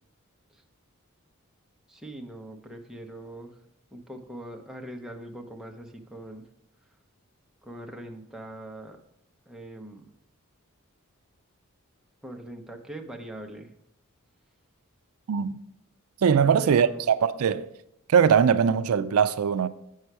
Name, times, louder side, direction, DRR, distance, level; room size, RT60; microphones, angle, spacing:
voice 1, 1.9-3.6 3.9-6.5 7.6-9.0 9.5-10.1 12.2-13.7 16.6-17.1, right 1 dB, 5° right, 0.8 m, -42 dB
voice 2, 16.2-17.7 18.1-19.7, right 7 dB, 80° right, 0.4 m, -21 dB
7.8 x 5.6 x 4.7 m
head